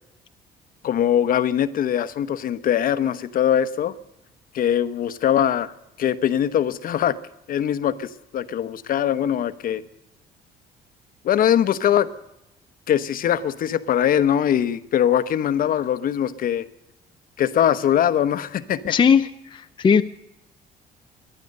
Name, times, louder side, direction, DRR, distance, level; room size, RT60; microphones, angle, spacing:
voice 1, 0.8-3.9 4.5-5.7 6.0-7.2 7.5-9.8 11.2-12.1 12.9-16.6 17.4-18.9, left 10 dB, 55° left, 13 dB, 1.0 m, -22 dB
voice 2, 18.9-19.2 19.5-20.0, left 6 dB, 30° left, 8 dB, 0.6 m, -17 dB
19.0 x 11.5 x 6.6 m, 0.86 s
cardioid pair, 110°, 17 cm